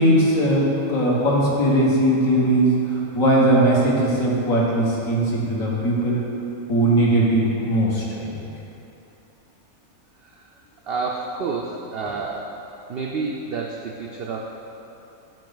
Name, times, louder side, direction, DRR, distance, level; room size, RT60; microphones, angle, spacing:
voice 1, 0.0-6.2 6.7-8.5, right 1 dB, 70° left, -4 dB, 1.6 m, -19 dB
voice 2, 10.9-12.5 12.9-14.5, right 4 dB, 75° right, -1 dB, 0.5 m, -29 dB
7.6 x 5.1 x 3.9 m, 2.9 s
omnidirectional pair, 1.5 m